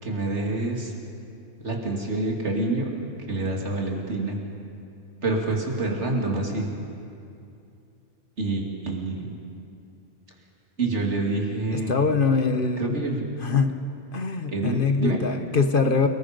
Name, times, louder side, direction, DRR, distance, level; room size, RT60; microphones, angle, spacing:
voice 1, 0.0-0.9 1.6-2.9 3.3-4.4 5.2-6.7 8.4-9.3 10.8-11.9 12.8-13.2 14.5-15.2, right 2 dB, 70° right, 0 dB, 3.1 m, -27 dB
voice 2, 11.7-13.0 13.4-13.8 14.1-16.1, left 5 dB, 50° left, 7 dB, 1.2 m, -23 dB
29.0 x 20.0 x 5.3 m, 2.6 s
omnidirectional pair, 1.2 m